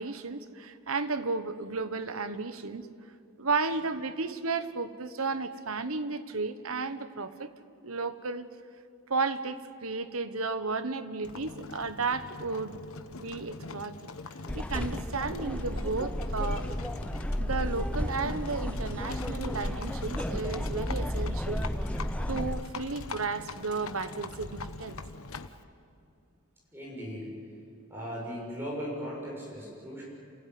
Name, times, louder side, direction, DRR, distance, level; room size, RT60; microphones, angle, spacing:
voice 1, 0.0-2.9 3.4-7.5 7.8-8.4 9.1-12.8 13.2-13.9 14.5-16.7 17.4-21.6 22.3-25.0, right 4 dB, 75° right, 11 dB, 1.2 m, -33 dB
Livestock farm animals working animals, 11.2-25.6, left 3 dB, 75° left, 1.1 m, -43 dB
sound 1, 14.5-22.6, equal, 5° left, 0.5 m, -33 dB
voice 2, 26.7-27.3 27.9-30.0, equal, 10° right, -4 dB, 7.0 m, -37 dB
28.0 x 16.0 x 9.6 m, 2.5 s
head